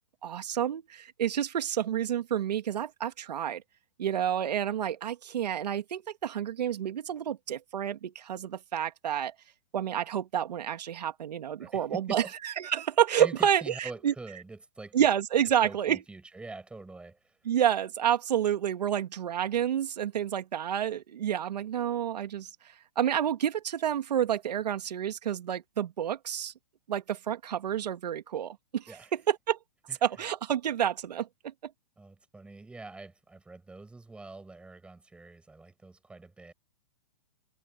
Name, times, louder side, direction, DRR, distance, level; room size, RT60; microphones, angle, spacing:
voice 1, 0.2-3.6 4.0-9.3 9.7-13.6 14.0-14.1 14.9-16.0 17.5-22.5 23.0-26.5 26.9-28.8 29.1-29.6 30.0-31.7, right 9 dB, 75° right, 2.3 m, -29 dB
voice 2, 11.6-12.3 13.2-15.0 15.6-17.4 28.9-29.1 29.9-30.0 32.0-36.5, right 3 dB, 5° right, 6.6 m, -45 dB
hypercardioid pair, 160°, 21 cm